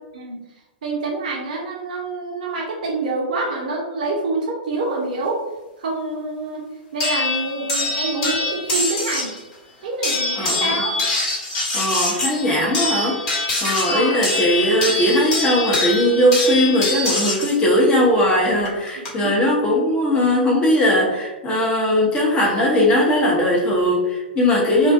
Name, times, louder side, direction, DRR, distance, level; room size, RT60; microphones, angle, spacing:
voice 1, 0.8-5.4 5.8-6.6 6.9-9.3 9.8-11.0 13.9-14.2 18.9-19.4 24.8-24.9, right 3 dB, 55° right, -1 dB, 0.6 m, -26 dB
sound 1, 7.0-9.4 10.0-17.6 18.7-19.1, left 2 dB, 35° left, 1.0 m, -24 dB
voice 2, 10.3-10.8 11.7-13.2 13.6-24.9, equal, 20° left, -3 dB, 0.6 m, -19 dB
2.5 x 2.2 x 2.4 m, 1.1 s
figure-of-eight pair, 105°, 5 cm